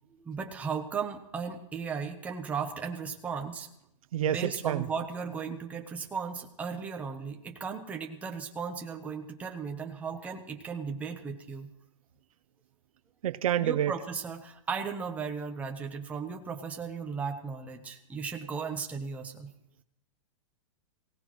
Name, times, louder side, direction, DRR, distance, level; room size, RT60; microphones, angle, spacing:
voice 1, 0.2-3.7 4.2-11.7 13.6-19.5, right 6 dB, 10° right, 3 dB, 0.9 m, -36 dB
voice 2, 4.1-4.9 13.2-13.9, right 11 dB, 80° right, 13 dB, 0.6 m, -28 dB
22.0 x 17.0 x 3.1 m, 0.79 s
supercardioid pair, 175°, 18 cm